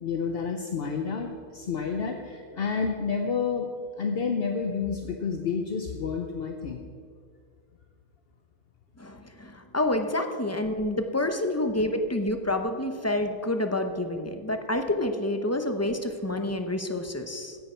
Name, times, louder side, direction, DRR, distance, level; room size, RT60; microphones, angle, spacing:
voice 1, 0.0-3.7 4.0-6.8, left 5 dB, 65° left, 3 dB, 1.0 m, -29 dB
voice 2, 9.0-17.6, left 1 dB, 15° left, 6 dB, 0.8 m, -28 dB
16.0 x 10.5 x 4.5 m, 2.1 s
omnidirectional pair, 1.1 m